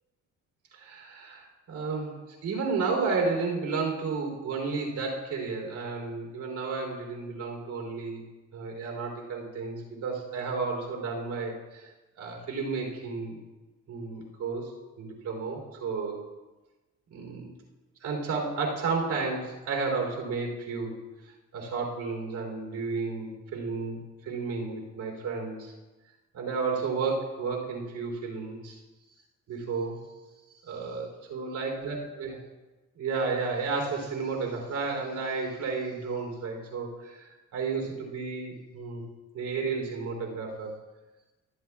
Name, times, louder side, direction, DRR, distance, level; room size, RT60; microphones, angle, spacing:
voice 1, 0.7-8.2 8.5-11.9 12.2-13.4 13.9-16.2 17.1-17.5 18.0-21.0 21.5-25.7 26.3-28.8 29.5-30.0 30.6-32.4 32.9-39.0 39.3-40.7, right 4 dB, 75° right, 0 dB, 3.4 m, -32 dB
23.0 x 8.3 x 2.4 m, 1.1 s
cardioid pair, 90°, 30 cm